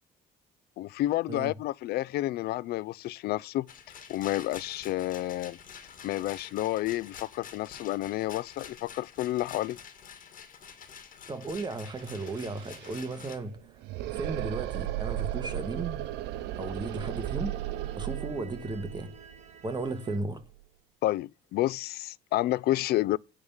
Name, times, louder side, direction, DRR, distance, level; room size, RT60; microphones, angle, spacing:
voice 1, 0.8-3.7 4.1-5.6 6.0-9.8 21.0-23.2, left 15 dB, 70° left, 0.4 m, -30 dB
Rattle, 3.7-13.4, left 7 dB, 55° left, 2.0 m, -48 dB
voice 2, 11.3-13.6 14.1-16.0 16.6-17.5 18.0-19.1 19.6-20.4, right 3 dB, 25° right, 1.5 m, -35 dB
sound 1, 11.8-20.6, right 14 dB, 85° right, 0.7 m, -36 dB
sound 2, 16.7-20.2, right 1 dB, 40° right, 1.4 m, -52 dB
9.8 x 3.7 x 7.1 m
cardioid pair, 110°, 17 cm